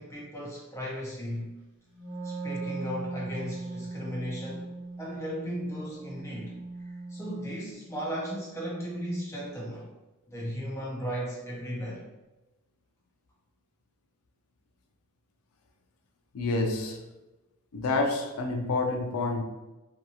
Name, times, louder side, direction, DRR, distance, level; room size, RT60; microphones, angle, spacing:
voice 1, 0.0-1.5 2.2-4.7 5.0-6.5 6.8-9.9 10.3-12.1, equal, 15° left, 0.5 m, -36 dB
Wind instrument woodwind instrument, 1.9-7.6, right 3 dB, 50° right, 0.7 m, -39 dB
voice 2, 16.3-17.0 17.7-19.4, left 3 dB, 80° left, 0.4 m, -28 dB
2.6 x 2.3 x 2.8 m
head